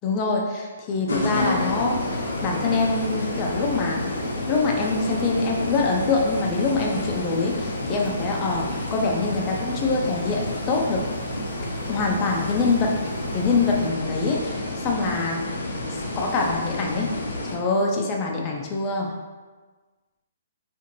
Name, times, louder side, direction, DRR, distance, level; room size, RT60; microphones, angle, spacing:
voice 1, 0.0-4.0 4.5-11.0 11.9-13.0 13.3-15.4 15.9-17.1 17.4-19.1, left 3 dB, 25° left, -1 dB, 0.4 m, -24 dB
sound 1, 1.1-17.6, left 1 dB, 80° left, 0.6 m, -30 dB
sound 2, 1.3-13.9, right 1 dB, 85° right, 0.9 m, -38 dB
2.6 x 2.5 x 2.9 m, 1.3 s
hypercardioid pair, 140°, 0 cm